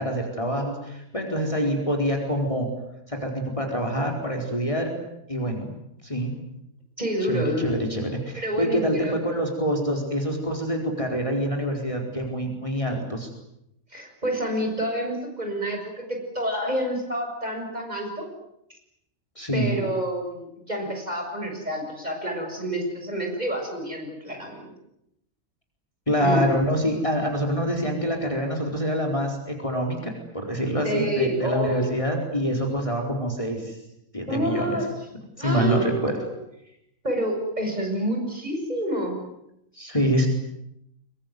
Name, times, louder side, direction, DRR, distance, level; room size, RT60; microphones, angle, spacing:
voice 1, 0.0-2.7 3.1-4.9 5.3-5.7 6.0-6.3 7.3-13.3 19.4-19.8 26.1-33.8 34.1-34.8 35.4-36.1 39.7-40.3, equal, 25° left, 1 dB, 4.6 m, -26 dB
voice 2, 7.0-7.7 8.4-9.1 13.9-18.3 19.5-24.7 26.2-26.4 30.8-31.9 34.3-34.9 35.4-36.3 37.0-39.2, right 1 dB, 30° right, 2 dB, 7.2 m, -28 dB
25.5 x 23.5 x 9.5 m, 0.81 s
omnidirectional pair, 1.4 m